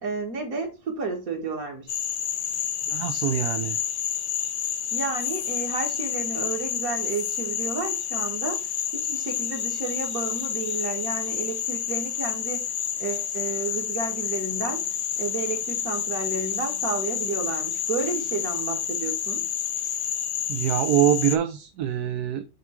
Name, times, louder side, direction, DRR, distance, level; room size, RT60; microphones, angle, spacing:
voice 1, 0.0-2.0 4.9-8.6 8.9-12.7 13.0-19.5, right 4 dB, 65° right, 2.4 m, -31 dB
Frog, 1.9-21.4, left 9 dB, 75° left, 1.4 m, -29 dB
voice 2, 2.9-3.8 20.5-22.5, right 10 dB, 80° right, 1.2 m, -24 dB
8.2 x 3.5 x 4.6 m
omnidirectional pair, 1.7 m